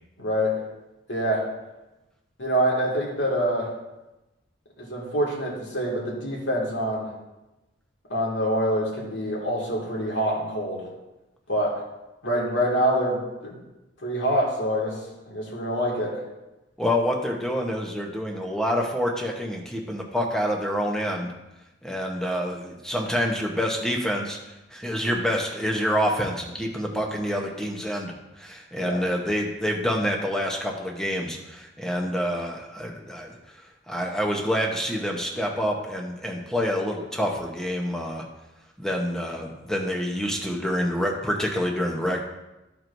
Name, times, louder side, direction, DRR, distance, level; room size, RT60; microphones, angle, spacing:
voice 1, 0.2-0.5 1.1-1.4 2.4-3.7 4.8-7.1 8.1-10.8 11.5-11.7 12.2-13.6 14.0-14.9 15.3-16.1 28.8-29.0, equal, 90° left, -3 dB, 2.1 m, -25 dB
voice 2, 16.8-21.3 21.8-24.4 24.7-33.4 33.9-38.2 38.8-42.2, equal, 5° left, 0 dB, 0.8 m, -27 dB
13.5 x 4.5 x 2.6 m, 1.0 s
head